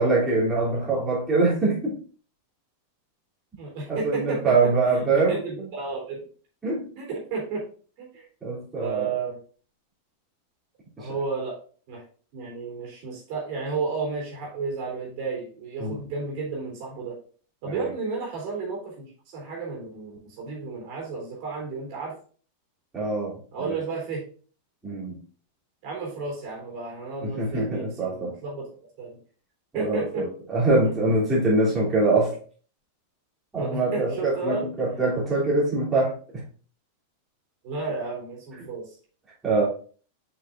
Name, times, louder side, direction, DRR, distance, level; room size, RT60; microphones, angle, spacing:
voice 1, 0.0-2.0 3.9-5.7 6.6-6.9 8.4-9.1 11.0-11.1 15.8-16.0 17.7-17.9 22.9-23.8 24.8-25.2 27.2-28.3 29.7-32.4 33.5-36.4 39.4-39.7, right 3 dB, 15° right, -7 dB, 3.3 m, -24 dB
voice 2, 3.6-6.2 6.9-7.6 8.0-8.2 8.8-9.4 11.0-11.6 11.9-12.0 12.3-17.1 17.6-22.1 23.5-24.2 25.8-28.7 29.0-29.2 29.7-30.3 30.8-30.9 33.6-34.9 37.6-39.0, right 4 dB, 45° right, -2 dB, 3.4 m, -32 dB
8.1 x 5.7 x 2.6 m, 0.41 s
figure-of-eight pair, 90°, 0 cm